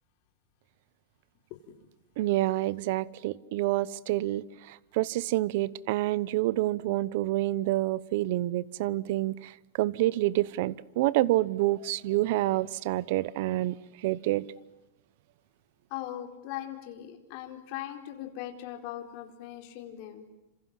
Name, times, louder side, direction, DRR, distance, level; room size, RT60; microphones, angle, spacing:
voice 1, 2.2-14.5, right 16 dB, 50° right, 21 dB, 1.0 m, -28 dB
voice 2, 15.9-20.2, left 12 dB, 40° left, 4 dB, 4.5 m, -39 dB
29.0 x 27.0 x 7.6 m, 1.0 s
supercardioid pair, 170°, 0 cm